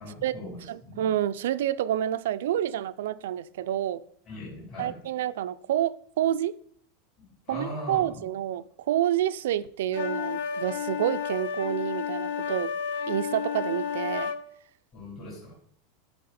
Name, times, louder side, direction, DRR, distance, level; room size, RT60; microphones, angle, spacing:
voice 1, 0.0-1.0 4.3-5.0 7.4-8.3 14.9-15.5, left 1 dB, 30° left, 3.6 m, -39 dB
voice 2, 0.7-4.0 4.8-6.6 7.5-12.7 13.1-14.3, right 11 dB, 75° right, 0.4 m, -28 dB
sound 1, 9.9-14.4, left 7 dB, 70° left, 0.7 m, -31 dB
12.5 x 4.6 x 4.2 m
supercardioid pair, 180°, 0 cm